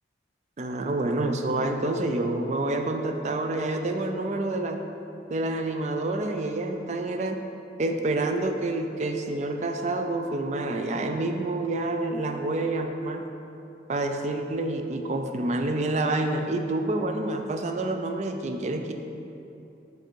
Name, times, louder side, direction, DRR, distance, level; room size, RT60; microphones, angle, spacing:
voice 1, 0.6-4.8 5.3-7.4 7.8-13.2 13.9-18.9, right 2 dB, 40° right, 5 dB, 0.4 m, -28 dB
5.2 x 4.5 x 4.5 m, 2.9 s
head